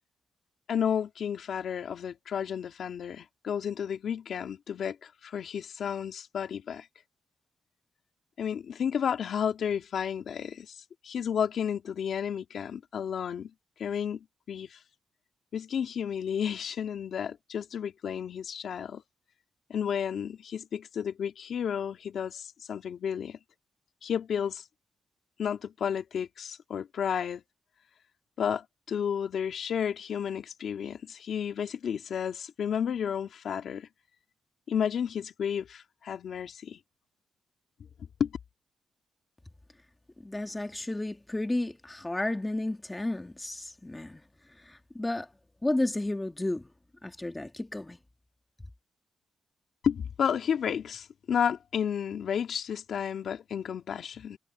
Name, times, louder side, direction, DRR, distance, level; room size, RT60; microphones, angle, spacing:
voice 1, 0.7-6.9 8.4-13.5 13.8-14.8 15.5-19.0 19.7-23.4 24.0-24.6 25.4-27.4 28.4-33.9 34.7-36.8 38.2-38.3 49.8-54.4, left 8 dB, 70° left, 2.1 m, -32 dB
voice 2, 40.2-44.2 44.6-45.3 45.6-46.7 47.0-48.0, left 1 dB, 15° left, 2.0 m, -32 dB
cardioid pair, 100°, 0 cm